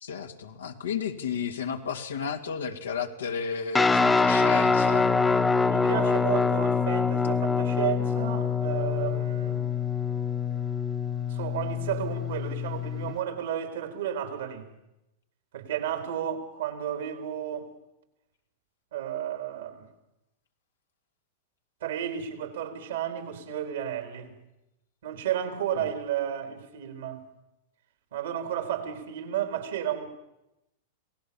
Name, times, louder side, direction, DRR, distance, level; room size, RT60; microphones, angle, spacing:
voice 1, 0.0-5.1 25.8-25.9, left 6 dB, 85° left, 2.3 m, -33 dB
Guitar, 3.7-13.1, left 5 dB, 10° left, 1.3 m, -25 dB
voice 2, 5.7-9.6 11.3-14.7 15.5-17.7 18.9-19.9 21.8-24.4 25.0-27.2 28.1-30.1, right 10 dB, 75° right, 4.0 m, -32 dB
27.0 x 17.5 x 7.1 m
hypercardioid pair, 105°, 0 cm